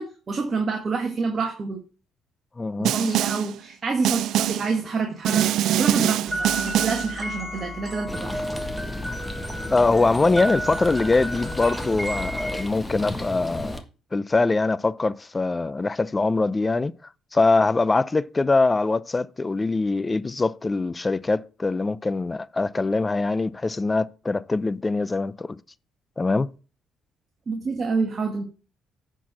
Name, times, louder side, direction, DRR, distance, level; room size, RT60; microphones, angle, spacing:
voice 1, 0.0-1.8 2.8-8.4 27.5-28.4, right 4 dB, 45° right, 1.7 m, -27 dB
voice 2, 2.6-3.2 9.7-13.8 14.1-16.9 17.3-25.6 26.2-26.5, left 3 dB, 25° left, 0.5 m, -23 dB
Snare drum, 2.8-3.5 4.0-4.7 5.2-7.1, right 12 dB, 75° right, 0.4 m, -23 dB
sound 1, 6.3-12.6, equal, 15° right, 4.0 m, -32 dB
sound 2, 8.1-13.8, left 1 dB, 5° left, 1.6 m, -34 dB
10.0 x 4.6 x 6.0 m
supercardioid pair, 70°, 0 cm